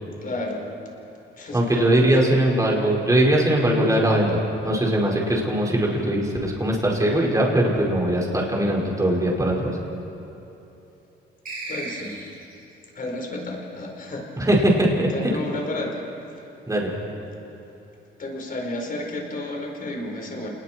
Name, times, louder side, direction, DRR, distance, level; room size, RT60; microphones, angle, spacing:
voice 1, 0.2-0.7 1.4-2.1 11.7-12.2 12.9-14.5 15.1-16.1 18.2-20.5, left 2 dB, 45° left, 1 dB, 4.7 m, -32 dB
voice 2, 1.5-9.7 14.4-15.1 16.7-16.9, right 1 dB, 15° right, -3 dB, 5.2 m, -21 dB
sound 1, 11.4-12.6, right 3 dB, 45° right, 5.7 m, -35 dB
29.0 x 20.0 x 4.6 m, 3.0 s
cardioid pair, 90°, 20 cm